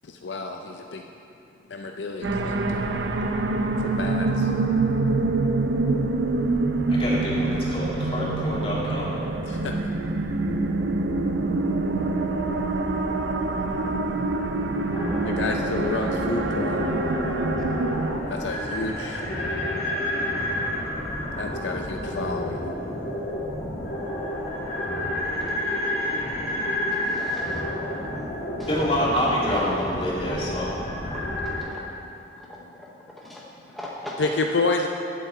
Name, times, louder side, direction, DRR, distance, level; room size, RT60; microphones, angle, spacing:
voice 1, 0.1-1.0 1.7-2.8 3.8-4.5 9.5-9.8 15.3-16.9 18.3-19.2 21.4-22.6 34.2-34.9, left 3 dB, 80° left, 3 dB, 0.5 m, -29 dB
sound 1, 2.2-18.2, right 2 dB, 80° right, 0.7 m, -25 dB
voice 2, 6.9-9.2 28.4-30.7, equal, 30° left, -6 dB, 2.2 m, -27 dB
sound 2, 14.9-31.6, left 1 dB, 60° left, 2.6 m, -30 dB
voice 3, 26.9-27.6 28.2-28.3 28.6-28.7 31.1-31.8 32.4-34.3, left 1 dB, ahead, -4 dB, 0.7 m, -41 dB
7.9 x 6.5 x 7.9 m, 2.7 s
head